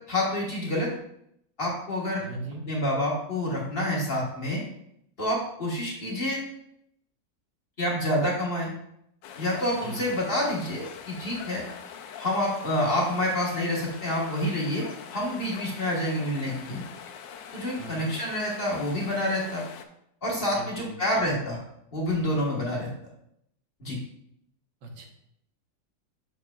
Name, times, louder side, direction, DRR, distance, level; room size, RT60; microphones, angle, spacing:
voice 1, 0.1-0.9 1.6-2.2 2.7-4.6 5.2-6.4 7.8-8.7 9.4-11.6 12.1-14.8 15.1-16.8 17.5-19.6 20.2-21.6 21.9-22.9 23.8-24.0, left 1 dB, 35° left, -3 dB, 1.6 m, -28 dB
voice 2, 2.2-2.7 9.7-10.0 17.7-18.1 20.4-20.9 24.8-25.1, right 2 dB, 80° right, 2 dB, 1.8 m, -39 dB
sound 1, 9.2-19.9, left 7 dB, 90° left, 1.3 m, -43 dB
7.5 x 6.5 x 2.4 m, 0.76 s
omnidirectional pair, 1.9 m